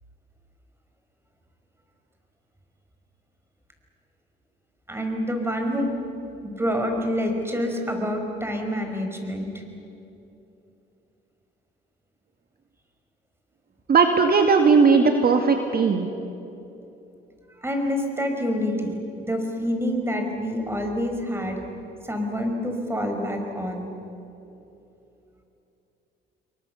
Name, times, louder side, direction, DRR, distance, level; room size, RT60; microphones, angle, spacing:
voice 1, 4.9-6.0 6.4-9.5 17.6-21.6 22.0-23.9, equal, 10° right, 3 dB, 5.4 m, -27 dB
voice 2, 13.9-16.1, right 5 dB, 50° right, 5 dB, 1.9 m, -18 dB
29.0 x 23.0 x 7.0 m, 2.9 s
cardioid pair, 90°, 20 cm